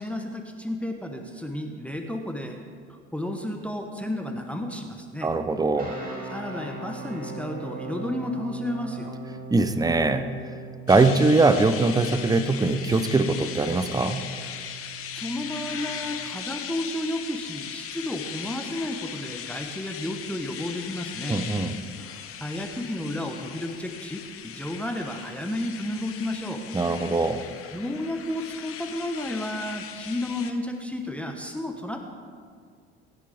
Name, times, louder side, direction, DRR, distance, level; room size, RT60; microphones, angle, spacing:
voice 1, 0.0-2.6 2.9-5.3 6.3-9.2 15.1-21.4 22.4-26.6 27.7-32.1, left 1 dB, 5° left, 4 dB, 1.1 m, -32 dB
voice 2, 5.2-5.9 9.5-10.3 10.9-14.3 21.3-21.7 26.7-27.4, right 3 dB, 10° right, 11 dB, 0.8 m, -22 dB
sound 1, 5.8-15.9, right 4 dB, 25° right, 2.8 m, -40 dB
sound 2, 10.9-30.5, left 8 dB, 45° left, 1.1 m, -38 dB
18.0 x 10.0 x 3.6 m, 2.1 s
hypercardioid pair, 70°, 33 cm